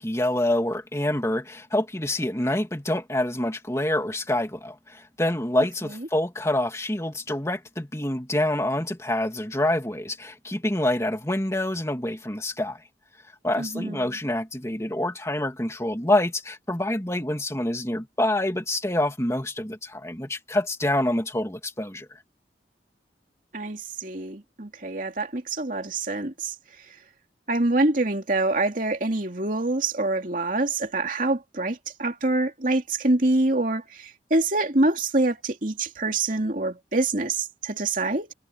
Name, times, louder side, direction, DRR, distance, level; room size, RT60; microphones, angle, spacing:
voice 1, 0.0-12.8 13.4-22.2, left 1 dB, 15° left, 2.8 m, -26 dB
voice 2, 13.6-14.2 23.5-26.5 26.9-27.0 27.5-38.3, right 2 dB, 50° right, 2.7 m, -25 dB
head